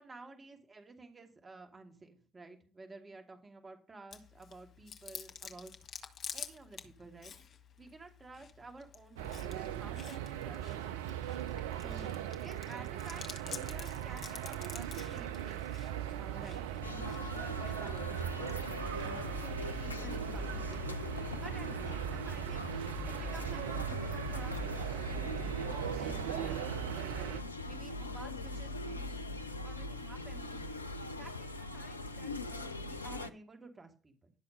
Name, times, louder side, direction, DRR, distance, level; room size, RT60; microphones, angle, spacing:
voice 1, 0.0-5.7 6.3-7.3 7.8-11.2 11.8-15.6 16.2-18.1 19.0-20.9 21.4-22.7 23.0-26.9 27.1-29.3 29.6-30.6 31.1-34.3, right 3 dB, 25° right, 4 dB, 2.7 m, -52 dB
Chewing mastication, 4.1-21.7, left 7 dB, 45° left, 1.6 m, -51 dB
sound 1, 9.2-27.4, right 11 dB, 70° right, 0.5 m, -39 dB
sound 2, 16.8-33.3, left 2 dB, 85° left, 0.5 m, -41 dB
11.5 x 7.2 x 5.3 m, 0.36 s
figure-of-eight pair, 50°, 0 cm